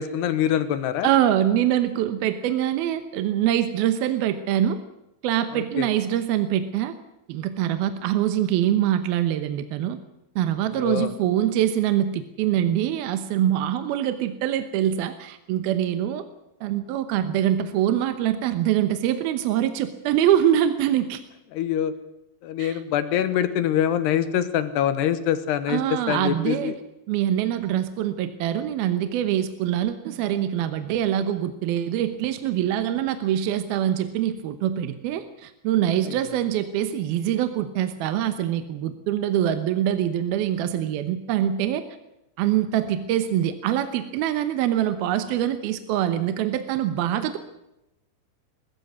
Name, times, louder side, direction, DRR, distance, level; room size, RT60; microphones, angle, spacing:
voice 1, 0.0-1.1 5.5-5.9 10.8-11.1 21.5-21.9 22.4-25.8 26.1-26.7 36.0-36.2, left 10 dB, 75° left, 12 dB, 3.1 m, -24 dB
voice 2, 1.0-4.8 5.2-7.0 7.3-10.0 10.4-16.2 16.6-21.2 22.6-22.8 25.7-26.7 27.1-41.8 42.4-47.4, right 11 dB, 70° right, 10 dB, 2.6 m, -24 dB
22.0 x 14.5 x 9.6 m, 0.88 s
omnidirectional pair, 5.0 m